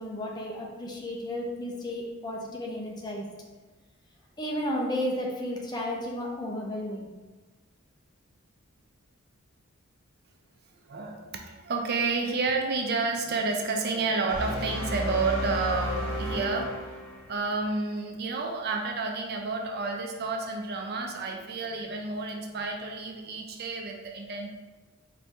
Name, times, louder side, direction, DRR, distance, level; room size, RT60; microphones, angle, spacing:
voice 1, 0.0-3.3 4.4-7.1, left 1 dB, 20° left, -1 dB, 0.5 m, -33 dB
voice 2, 10.9-16.8 17.2-24.5, right 3 dB, 45° right, 2 dB, 0.4 m, -30 dB
sound 1, 14.3-17.5, equal, 80° left, 1.4 m, -32 dB
4.2 x 2.6 x 3.5 m, 1.2 s
head